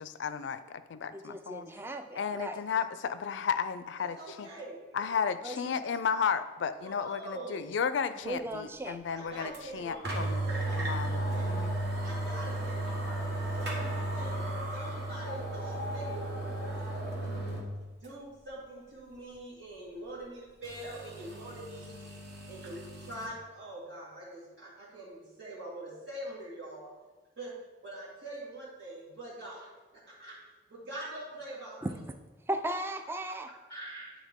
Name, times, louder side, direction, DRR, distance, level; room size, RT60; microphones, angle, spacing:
voice 1, 0.0-1.7 2.1-4.5 4.9-10.4 10.7-11.8, left 6 dB, 70° left, 13 dB, 0.4 m, -33 dB
voice 2, 1.1-2.6 5.4-5.8 8.2-9.0 17.3-17.4 31.8-31.9 32.5-33.5, right 1 dB, 10° right, 8 dB, 0.3 m, -36 dB
voice 3, 4.0-5.0 6.8-7.7 9.1-11.5 11.9-13.2 13.4-17.0 18.0-22.0 22.5-26.9 27.4-27.5 27.8-29.7 29.9-30.4 30.7-31.9 33.7-34.1, right 1 dB, 75° right, -8 dB, 1.9 m, -44 dB
sound 1, 9.5-9.6 10.0-17.7 18.0-18.1 20.6-23.3, right 1 dB, 60° right, 1.1 m, -34 dB
9.4 x 3.6 x 3.6 m, 1.2 s
head